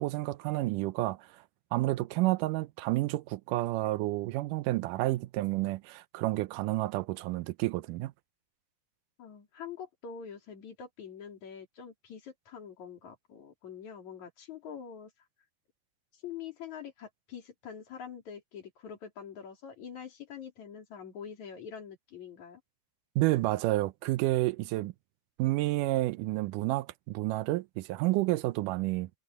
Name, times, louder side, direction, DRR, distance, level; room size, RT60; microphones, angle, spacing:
voice 1, 0.0-1.4 1.7-8.1 23.2-24.9 25.4-29.1, right 18 dB, 80° right, 2.1 m, -30 dB
voice 2, 9.2-15.1 16.1-22.6 24.8-24.9, left 7 dB, 60° left, 4.6 m, -45 dB
omnidirectional pair, 3.9 m